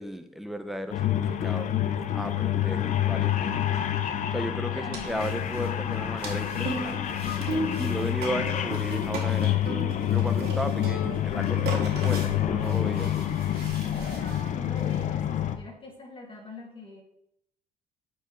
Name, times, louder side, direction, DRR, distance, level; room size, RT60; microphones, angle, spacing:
voice 1, 0.0-1.7 2.1-3.7 4.3-7.2 7.8-9.8 10.1-13.2, equal, ahead, 7 dB, 0.6 m, -35 dB
sound 1, 0.9-15.6, left 11 dB, 45° left, 0.6 m, -27 dB
voice 2, 4.7-5.5 7.8-8.8 10.8-10.9 14.0-17.0, left 2 dB, 30° left, -2 dB, 2.2 m, -44 dB
sound 2, 4.9-15.0, right 2 dB, 70° right, 1.9 m, -37 dB
8.8 x 4.4 x 3.2 m, 0.79 s
cardioid pair, 110°, 17 cm